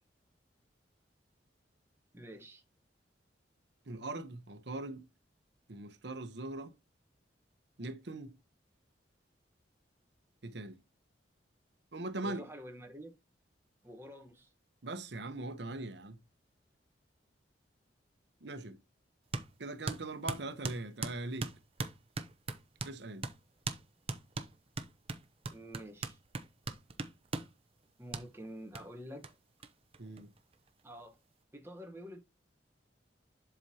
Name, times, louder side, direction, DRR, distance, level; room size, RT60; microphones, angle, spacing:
voice 1, 2.1-2.6 12.2-13.1 13.8-14.5 25.5-26.2 28.0-29.3 30.8-31.2 31.5-32.2, equal, 15° right, 1.1 m, -48 dB
voice 2, 3.9-5.0 5.7-6.7 7.8-8.3 10.4-10.8 11.9-12.4 14.8-16.2 18.4-18.8 19.6-21.5 22.8-23.2 30.0-30.3, right 2 dB, 70° right, 0.9 m, -41 dB
sound 1, 19.3-19.5 19.9-23.0 23.2-23.4 23.7-23.8 24.1-27.5 28.1-28.3 28.8-28.9 29.2-29.3 29.6-29.7 29.9-30.7, right 3 dB, 30° right, 0.7 m, -39 dB
7.9 x 5.9 x 2.8 m
head